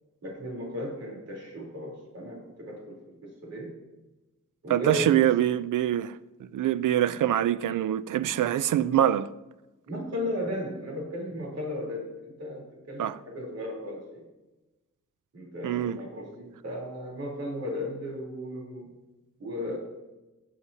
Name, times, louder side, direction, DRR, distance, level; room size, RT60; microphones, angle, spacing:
voice 1, 0.2-3.7 4.6-5.2 9.9-14.3 15.3-18.9 19.4-19.8, left 1 dB, 55° right, 3.5 m, -35 dB
voice 2, 4.7-6.2 6.5-9.3 13.0-13.2 15.6-16.0, right 11 dB, 85° right, 0.5 m, -24 dB
19.5 x 7.4 x 2.8 m
wide cardioid pair, 140°, 30 cm